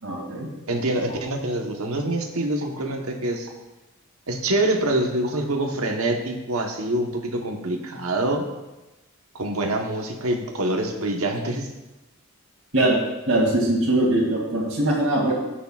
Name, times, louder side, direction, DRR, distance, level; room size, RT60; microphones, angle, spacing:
voice 1, 0.0-0.5 12.7-13.0 13.3-15.3, right 1 dB, 70° right, -2 dB, 2.4 m, -21 dB
voice 2, 0.7-3.5 4.3-8.5 9.3-11.7, right 1 dB, 90° right, 3 dB, 1.2 m, -25 dB
15.5 x 6.6 x 2.4 m, 1.0 s
head